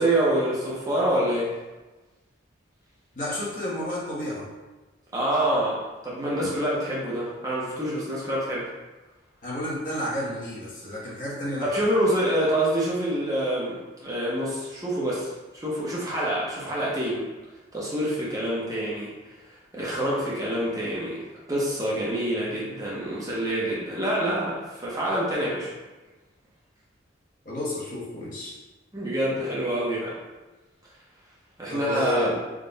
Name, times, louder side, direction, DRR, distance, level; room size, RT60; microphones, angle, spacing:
voice 1, 0.0-1.5 5.1-8.7 11.6-17.3 17.7-19.1 19.7-21.2 21.5-25.7 28.9-30.2 31.6-32.3, right 1 dB, 20° right, -6 dB, 0.7 m, -26 dB
voice 2, 3.1-4.5 9.4-11.7 27.4-28.5 31.7-32.4, left 1 dB, 45° left, -7 dB, 1.1 m, -31 dB
3.7 x 2.4 x 4.0 m, 1.2 s
head